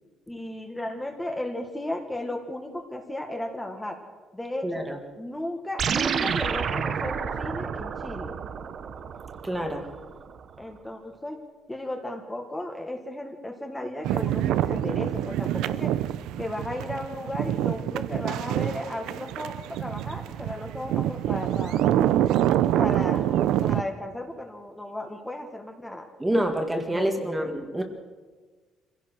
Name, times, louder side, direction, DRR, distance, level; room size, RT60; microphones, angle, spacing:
voice 1, 0.3-4.0 4.3-4.9 5.2-8.3 10.6-11.4 11.7-15.9 16.4-21.8 22.8-26.1 26.9-27.5, left 1 dB, 10° left, 3 dB, 1.8 m, -35 dB
voice 2, 4.6-5.0 9.4-9.9 26.2-27.8, right 1 dB, 10° right, 4 dB, 1.8 m, -27 dB
sound 1, 5.8-10.4, right 7 dB, 45° right, 1.0 m, -30 dB
sound 2, 14.0-23.8, right 12 dB, 90° right, 0.7 m, -26 dB
25.5 x 16.5 x 6.3 m, 1.4 s
cardioid pair, 155°, 0 cm